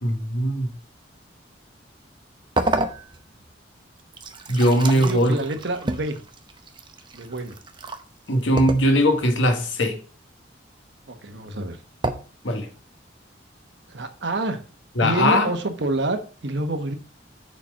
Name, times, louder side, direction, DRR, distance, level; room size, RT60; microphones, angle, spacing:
voice 1, 0.0-0.7 4.5-5.3 8.3-10.0 12.4-12.7 15.0-15.5, equal, 85° left, 1.5 m, -20 dB
sound 1, 2.6-3.5 4.0-8.0 8.6-9.3 12.0-12.1, right 2 dB, 25° right, 0.7 m, -29 dB
voice 2, 4.9-6.2 7.1-7.6 11.1-11.8 13.9-14.6 15.0-16.9, right 2 dB, 70° right, 1.1 m, -27 dB
6.8 x 4.3 x 6.2 m
head